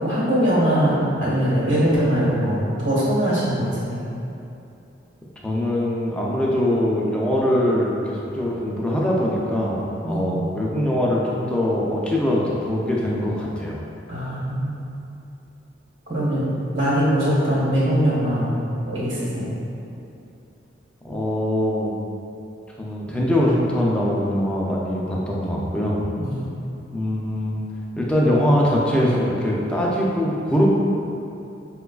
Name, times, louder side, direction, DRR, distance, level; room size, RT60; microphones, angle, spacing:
voice 1, 0.0-4.1 10.0-10.5 14.1-14.8 16.1-18.5 18.9-19.5 26.2-26.5, equal, 70° right, -8 dB, 1.1 m, -22 dB
voice 2, 5.4-13.8 21.0-22.0 22.8-26.0 26.9-27.6 28.0-30.7, left 1 dB, 5° left, -5 dB, 0.3 m, -22 dB
4.5 x 2.3 x 2.3 m, 2.7 s
head